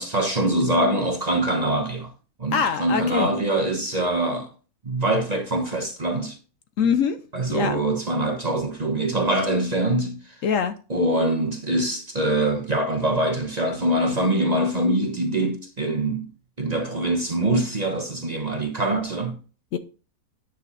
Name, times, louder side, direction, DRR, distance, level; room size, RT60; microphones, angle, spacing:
voice 1, 0.0-2.1 2.4-4.5 4.8-6.4 7.3-10.4 10.9-16.3 16.6-19.4, right 1 dB, 30° right, 1.0 m, -24 dB
voice 2, 2.5-3.3 6.8-7.2 7.5-7.8 10.4-10.7 19.7-19.8, left 7 dB, 65° left, 1.0 m, -23 dB
10.0 x 5.8 x 4.1 m
omnidirectional pair, 1.6 m